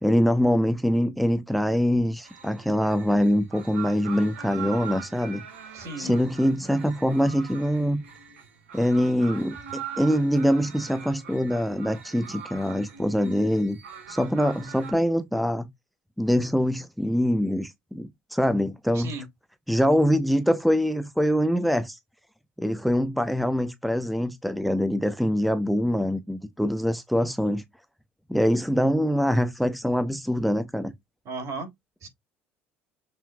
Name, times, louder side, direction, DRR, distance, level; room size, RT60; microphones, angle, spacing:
voice 1, 0.0-5.4 6.0-8.0 8.7-13.8 14.1-15.7 16.2-19.1 19.7-22.0 22.6-27.6 28.3-30.9, equal, ahead, 0.9 m, -24 dB
sound 1, 2.2-14.9, right 7 dB, 75° right, 2.1 m, -42 dB
voice 2, 5.7-6.1 18.9-19.2 31.2-31.7 32.0-32.1, right 3 dB, 50° right, 3.4 m, -35 dB
6.9 x 5.6 x 2.4 m
figure-of-eight pair, 60°, 6 cm